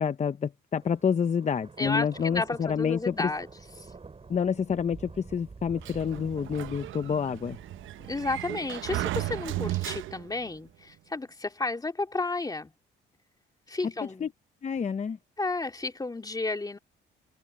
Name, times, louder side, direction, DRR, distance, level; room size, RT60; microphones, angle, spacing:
voice 1, 0.0-3.3 4.3-7.6 14.2-14.3 14.6-15.2, left 7 dB, 35° left, 0.8 m, -28 dB
Thunder, 0.8-10.6, right 4 dB, 30° right, 5.8 m, -49 dB
voice 2, 1.8-3.5 8.1-12.7 13.7-14.3 15.4-16.8, left 3 dB, 20° left, 2.7 m, -32 dB
Sliding door, 5.8-10.5, right 15 dB, 80° right, 0.8 m, -35 dB
cardioid pair, 90°, 20 cm